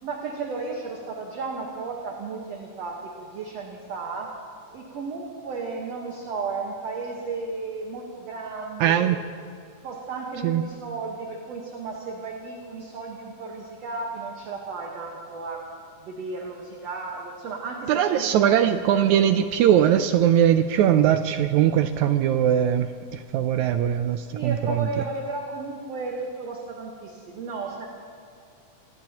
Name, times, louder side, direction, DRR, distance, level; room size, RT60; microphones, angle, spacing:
voice 1, 0.0-4.3 4.7-9.1 9.8-15.6 16.0-18.7 24.3-27.9, right 4 dB, 60° right, 0 dB, 2.2 m, -34 dB
voice 2, 8.8-9.2 10.4-10.6 17.9-24.9, right 10 dB, 85° right, 9 dB, 1.7 m, -21 dB
27.0 x 18.0 x 2.9 m, 2.3 s
omnidirectional pair, 3.8 m